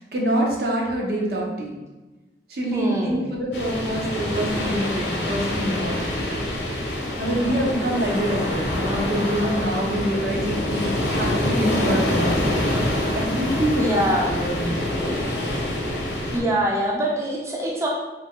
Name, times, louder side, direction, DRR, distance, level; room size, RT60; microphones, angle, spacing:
voice 1, 0.0-1.8 2.5-6.2 7.2-12.6 13.1-14.0 14.3-14.9, equal, 60° right, -2 dB, 0.6 m, -26 dB
voice 2, 2.7-3.3 13.8-14.4 16.3-17.9, right 1 dB, 15° right, -2 dB, 0.4 m, -23 dB
sound 1, 3.5-16.4, left 1 dB, 75° left, 0.7 m, -25 dB
2.5 x 2.2 x 3.5 m, 1.1 s
head